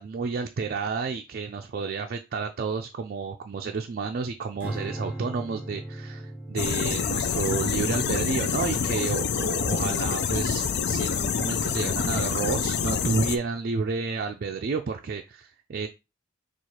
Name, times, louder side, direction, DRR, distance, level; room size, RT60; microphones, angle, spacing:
voice 1, 0.0-15.9, right 5 dB, 45° right, 4 dB, 0.4 m, -31 dB
Strum, 4.6-11.0, right 1 dB, 10° right, 1.2 m, -41 dB
sound 1, 6.6-13.4, left 6 dB, 55° left, 0.4 m, -27 dB
4.3 x 2.5 x 4.6 m, 0.26 s
head